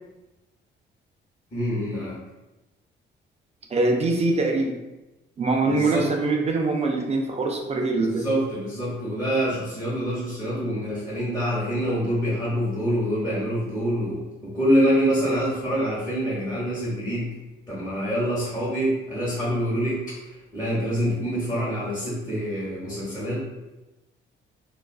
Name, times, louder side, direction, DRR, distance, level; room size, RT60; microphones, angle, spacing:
voice 1, 1.5-2.2 5.6-6.1 7.9-17.3 17.7-23.4, equal, 20° left, -10 dB, 0.9 m, -26 dB
voice 2, 3.7-4.8 5.4-8.2, right 3 dB, 35° right, 1 dB, 0.4 m, -23 dB
2.3 x 2.3 x 2.3 m, 1.0 s
cardioid pair, 90°, 20 cm